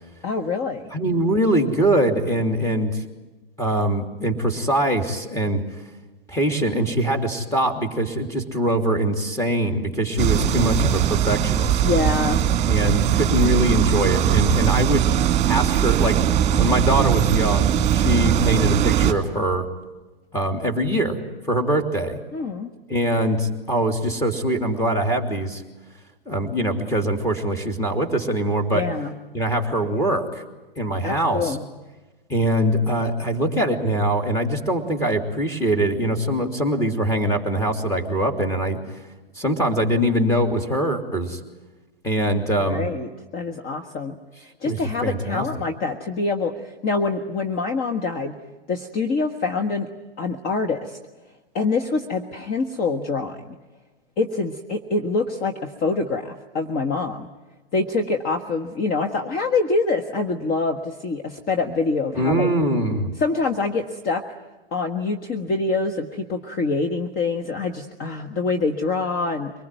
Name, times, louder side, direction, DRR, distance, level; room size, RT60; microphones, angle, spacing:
voice 1, 0.2-0.9 11.8-12.5 22.3-22.7 28.7-29.1 31.0-31.7 42.6-44.2 44.6-48.4 48.7-49.9 50.2-51.0 51.5-53.6 54.2-57.3 57.7-62.5 63.2-64.2 64.7-69.5, left 3 dB, 30° left, 5 dB, 1.6 m, -25 dB
voice 2, 0.9-3.0 3.6-5.6 6.3-11.8 12.7-15.1 15.4-16.2 16.6-19.6 20.3-21.2 21.5-22.2 22.9-25.6 26.3-28.8 29.3-30.4 30.8-31.6 32.3-38.8 39.4-41.4 42.0-42.9 44.6-45.5 62.1-63.1, right 1 dB, 10° left, 3 dB, 3.1 m, -23 dB
sound 1, 10.2-19.1, right 10 dB, 20° right, 2.3 m, -20 dB
24.5 x 20.0 x 9.2 m, 1.2 s
hypercardioid pair, 120°, 29 cm